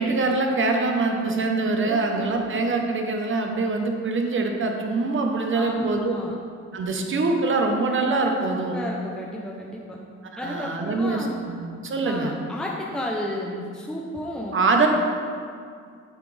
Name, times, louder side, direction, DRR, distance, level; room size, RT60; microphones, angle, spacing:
voice 1, 0.0-6.1 6.7-8.8 10.3-12.3 14.5-14.9, right 3 dB, 40° right, 3 dB, 1.0 m, -24 dB
voice 2, 1.8-2.6 5.5-6.3 8.5-10.0 10.4-11.4 12.0-14.6, left 1 dB, ahead, -3 dB, 0.8 m, -32 dB
8.7 x 5.8 x 3.4 m, 2.2 s
cardioid pair, 90°, 30 cm